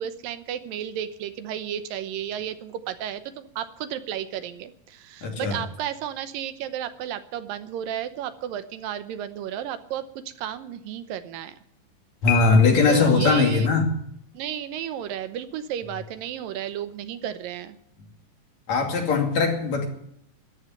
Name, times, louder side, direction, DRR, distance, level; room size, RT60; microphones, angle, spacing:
voice 1, 0.0-11.6 12.9-13.7 14.3-17.8, right 10 dB, 80° right, 12 dB, 2.6 m, -33 dB
voice 2, 5.2-5.6 12.2-13.9 18.7-19.9, left 4 dB, 50° left, 3 dB, 3.6 m, -20 dB
Piano, 12.3-13.2, left 9 dB, 35° left, 1.9 m, -30 dB
14.5 x 10.5 x 9.1 m, 0.72 s
omnidirectional pair, 4.1 m